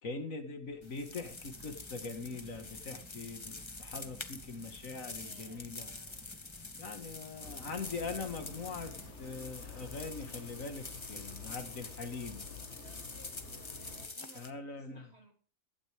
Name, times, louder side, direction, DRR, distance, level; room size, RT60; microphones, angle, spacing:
voice 1, 0.0-5.9 6.8-8.9 9.2-12.4 14.3-15.1, left 4 dB, 80° left, 6 dB, 2.2 m, -42 dB
sound 1, 0.6-9.1, equal, 5° left, 2.8 m, -56 dB
sound 2, 0.8-14.5, left 3 dB, 25° left, 0.9 m, -47 dB
voice 2, 5.1-6.4 12.8-15.3, right 2 dB, 50° right, 2 dB, 3.2 m, -61 dB
sound 3, 7.4-14.1, left 4 dB, 55° left, 1.9 m, -49 dB
16.0 x 12.0 x 3.5 m, 0.42 s
omnidirectional pair, 1.4 m